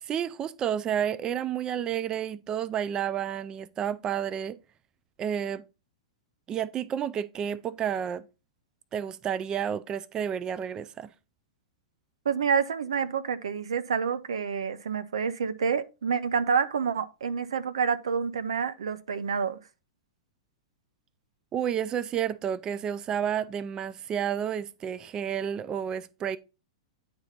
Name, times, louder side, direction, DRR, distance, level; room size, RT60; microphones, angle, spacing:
voice 1, 0.0-4.6 5.2-5.6 6.5-8.3 8.9-11.1 21.5-26.4, right 9 dB, 25° right, 0.4 m, -30 dB
voice 2, 12.2-19.6, right 6 dB, 70° right, 0.8 m, -28 dB
9.5 x 4.3 x 4.0 m
figure-of-eight pair, 105°, 3 cm